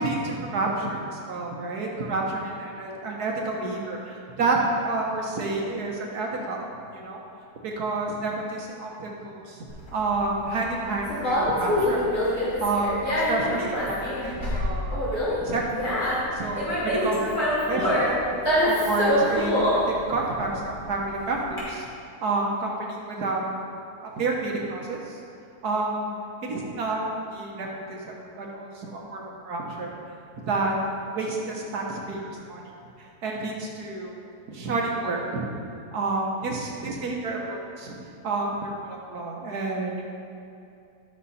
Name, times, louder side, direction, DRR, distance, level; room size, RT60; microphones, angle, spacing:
voice 1, 0.0-6.7 6.9-7.2 7.6-9.6 9.9-12.0 12.6-15.0 15.4-16.0 16.3-18.2 18.6-21.9 22.2-23.5 24.0-25.2 25.6-26.1 26.4-29.9 30.3-30.7 31.1-32.6 33.2-34.1 34.5-35.5 35.9-37.9 38.2-40.0, right 3 dB, 75° right, -1 dB, 1.7 m, -29 dB
Conversation, 9.7-21.6, equal, 40° left, 3.0 m, -25 dB
13.5 x 6.4 x 4.2 m, 2.6 s
omnidirectional pair, 1.7 m